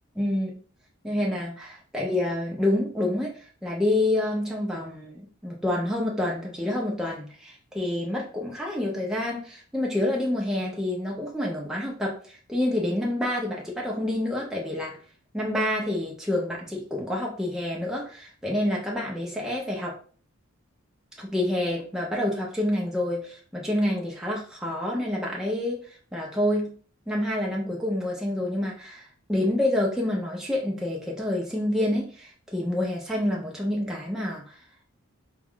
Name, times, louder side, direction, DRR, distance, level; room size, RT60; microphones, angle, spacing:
voice 1, 0.2-0.5 1.0-15.0 15.3-19.9 21.2-25.8 26.1-26.8 27.1-34.5, left 1 dB, ahead, -3 dB, 0.7 m, -28 dB
5.0 x 2.3 x 3.6 m, 0.41 s
head